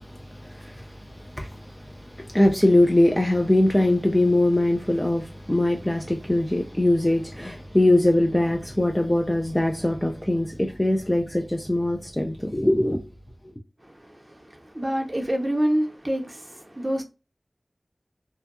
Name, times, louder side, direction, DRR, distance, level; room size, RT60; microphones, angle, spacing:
voice 1, 0.0-13.0 13.4-13.5, left 1 dB, 15° left, 0.3 m, -22 dB
voice 2, 13.8-17.0, equal, 25° right, 0.7 m, -27 dB
2.6 x 2.2 x 2.4 m
wide cardioid pair, 55°, 0 cm